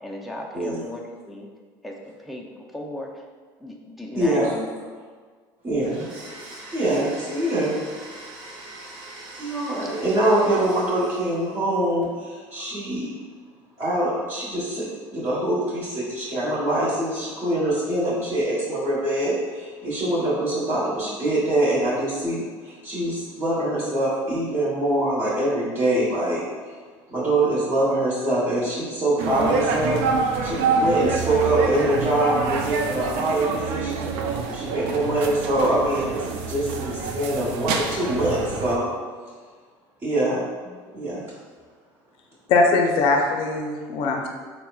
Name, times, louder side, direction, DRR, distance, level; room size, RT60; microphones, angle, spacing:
voice 1, 0.0-1.5 1.8-3.3 3.6-4.7, left 1 dB, ahead, -2 dB, 0.4 m, -36 dB
voice 2, 4.1-4.5 5.6-6.1 6.7-7.8 9.4-13.1 13.8-26.4 26.7-26.8 27.1-30.0 30.4-34.1 34.5-38.9 40.0-41.2, right 1 dB, 30° right, -10 dB, 1.0 m, -24 dB
Domestic sounds home sounds, 5.8-11.7, right 2 dB, 50° right, 1.0 m, -42 dB
sound 1, 29.2-38.8, right 4 dB, 75° right, 0.4 m, -26 dB
voice 3, 42.5-44.3, left 3 dB, 60° left, 2 dB, 0.4 m, -20 dB
4.1 x 2.0 x 2.3 m, 1.5 s
supercardioid pair, 90°, 10 cm